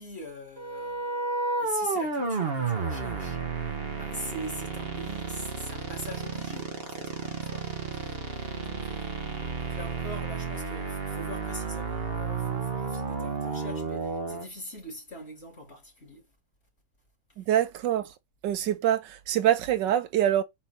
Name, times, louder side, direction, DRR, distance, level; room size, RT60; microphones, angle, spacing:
voice 1, 0.0-16.3 17.3-17.4, left 1 dB, 30° left, 3.1 m, -43 dB
sound 1, 0.6-14.4, right 4 dB, 35° right, 1.3 m, -32 dB
voice 2, 17.4-18.1 18.4-20.4, right 11 dB, 70° right, 1.4 m, -25 dB
5.8 x 3.9 x 4.3 m
omnidirectional pair, 2.1 m